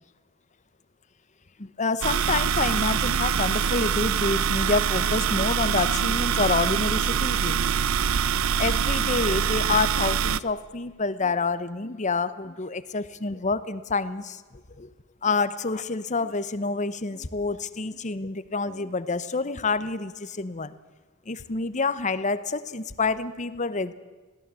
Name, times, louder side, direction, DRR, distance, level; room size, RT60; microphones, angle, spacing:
voice 1, 1.6-7.6 8.6-14.4 14.8-14.9 15.2-20.7 21.3-23.9, left 4 dB, 35° left, 14 dB, 0.9 m, -28 dB
sound 1, 2.0-10.4, right 7 dB, 80° right, 0.6 m, -24 dB
21.5 x 17.0 x 7.5 m, 1.3 s
head